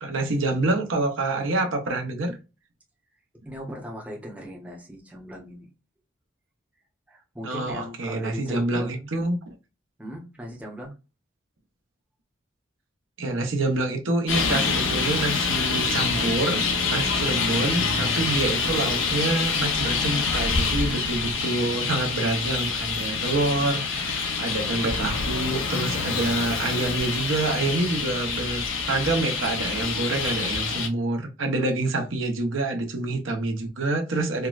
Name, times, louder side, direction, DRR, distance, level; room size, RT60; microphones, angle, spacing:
voice 1, 0.0-2.4 7.4-9.4 13.2-34.5, right 2 dB, 80° right, 0.8 m, -27 dB
voice 2, 3.4-5.7 7.1-9.3 10.0-10.9, equal, 5° right, 0.6 m, -39 dB
Traffic noise roadway noise, 14.3-30.9, left 4 dB, 80° left, 0.7 m, -26 dB
4.5 x 2.0 x 2.3 m
head